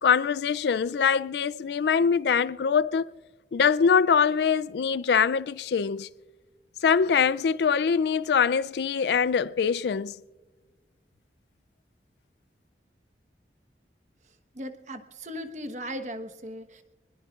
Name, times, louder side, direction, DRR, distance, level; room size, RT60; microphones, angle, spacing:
voice 1, 0.0-3.1 3.5-6.1 6.8-10.2, left 6 dB, 70° left, 0.4 m, -23 dB
voice 2, 14.5-16.8, equal, 40° right, 1.2 m, -37 dB
25.5 x 21.0 x 2.4 m
head